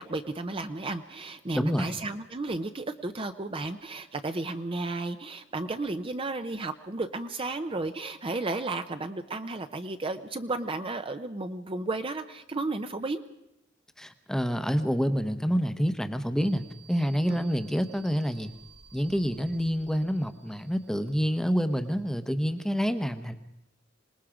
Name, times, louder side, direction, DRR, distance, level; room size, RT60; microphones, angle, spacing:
voice 1, 0.0-13.2 17.3-17.5, right 2 dB, 30° right, 8 dB, 0.7 m, -33 dB
voice 2, 1.5-1.9 14.0-18.5 18.9-23.3, equal, 5° left, 9 dB, 0.9 m, -27 dB
sound 1, 16.4-22.2, right 6 dB, 75° right, 5.4 m, -56 dB
26.5 x 19.5 x 5.0 m, 0.84 s
head